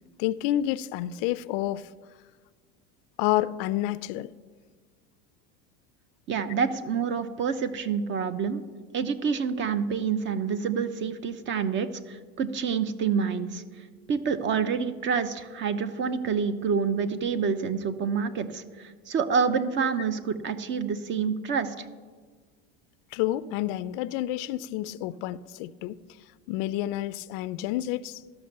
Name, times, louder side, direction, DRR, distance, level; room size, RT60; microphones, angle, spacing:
voice 1, 0.2-1.9 3.2-4.3 23.1-26.0 26.5-28.2, left 14 dB, 60° left, 17 dB, 0.4 m, -29 dB
voice 2, 6.3-8.6 8.9-13.6 14.1-21.9, right 6 dB, 35° right, 12 dB, 0.7 m, -27 dB
12.5 x 6.1 x 6.5 m, 1.5 s
supercardioid pair, 140°, 33 cm